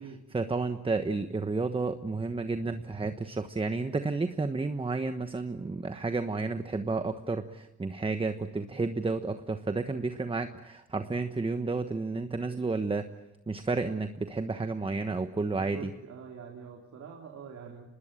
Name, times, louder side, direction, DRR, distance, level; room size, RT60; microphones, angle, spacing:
voice 1, 0.3-13.1 13.5-15.9, right 3 dB, 20° right, 9 dB, 1.2 m, -31 dB
voice 2, 15.6-17.9, right 6 dB, 60° right, 0 dB, 3.6 m, -45 dB
25.5 x 20.0 x 9.0 m, 0.95 s
cardioid pair, 90°, 30 cm